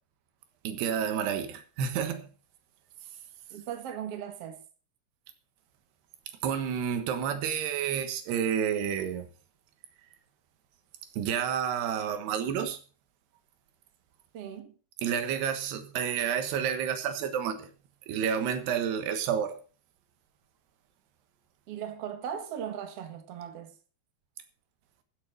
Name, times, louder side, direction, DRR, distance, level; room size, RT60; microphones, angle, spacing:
voice 1, 0.7-2.3 6.4-9.3 11.1-12.8 15.0-17.7 18.1-19.6, right 8 dB, 80° right, 3.5 m, -30 dB
voice 2, 3.5-4.6 14.3-14.7 21.7-23.7, right 9 dB, 50° right, 2.1 m, -38 dB
15.0 x 7.3 x 5.5 m
omnidirectional pair, 4.6 m